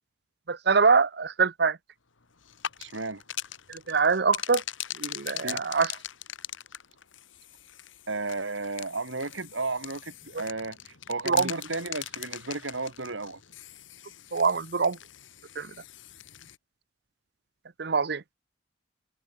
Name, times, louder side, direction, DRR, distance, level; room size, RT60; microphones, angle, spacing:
voice 1, 0.5-1.8 3.7-4.6 5.0-5.9 11.3-11.5 14.3-15.0 15.6-15.7 17.8-18.2, right 5 dB, 60° right, 0.8 m, -24 dB
sound 1, 2.4-16.6, left 11 dB, 90° left, 1.8 m, -40 dB
voice 2, 2.8-3.2 5.4-5.6 8.1-13.4, right 3 dB, 85° right, 3.0 m, -34 dB
head